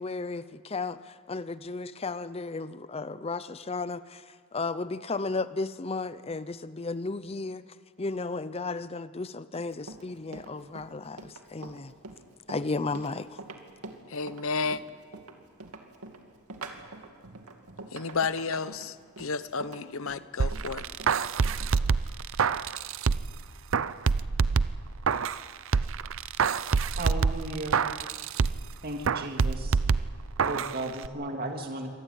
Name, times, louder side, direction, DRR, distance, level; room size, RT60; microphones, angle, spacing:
voice 1, 0.0-7.6 8.0-11.9 12.5-13.4, left 3 dB, 25° left, 15 dB, 0.6 m, -34 dB
Run, 9.5-21.7, right 3 dB, 85° right, 2.5 m, -45 dB
voice 2, 14.1-14.8 17.9-20.9, left 4 dB, 65° left, 14 dB, 0.9 m, -32 dB
sound 1, 20.4-23.4 23.7-25.4 25.7-28.7 29.0-30.7 31.0-31.1, right 5 dB, 60° right, 0.6 m, -26 dB
voice 3, 27.0-27.9 28.8-29.8 30.4-31.9, right 2 dB, 45° right, 3 dB, 2.1 m, -35 dB
25.5 x 18.5 x 9.0 m, 2.1 s
head